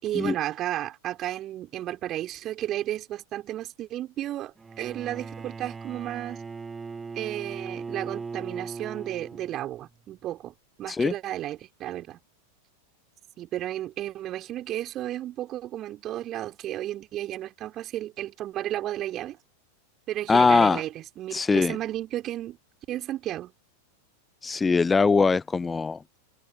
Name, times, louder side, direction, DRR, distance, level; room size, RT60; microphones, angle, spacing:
voice 1, 0.0-6.4 7.1-12.2 13.4-19.4 20.1-22.6 22.9-23.5, right 13 dB, 30° right, 5.3 m, -33 dB
Bowed string instrument, 4.6-9.8, right 4 dB, 15° right, 1.3 m, -39 dB
voice 2, 20.3-20.8 21.3-21.7 24.4-26.2, left 4 dB, 15° left, 0.6 m, -22 dB
figure-of-eight pair, 90°, 0 cm